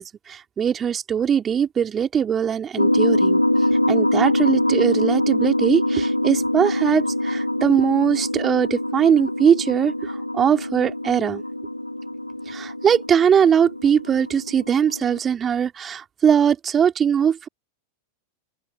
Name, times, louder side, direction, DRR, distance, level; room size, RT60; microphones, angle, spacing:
voice 1, 0.0-3.4 3.9-11.4 12.5-17.5, right 8 dB, 25° right, 3.3 m, -21 dB
sound 1, 2.8-15.2, left 1 dB, 85° left, 2.2 m, -24 dB
open air
figure-of-eight pair, 90°, 0 cm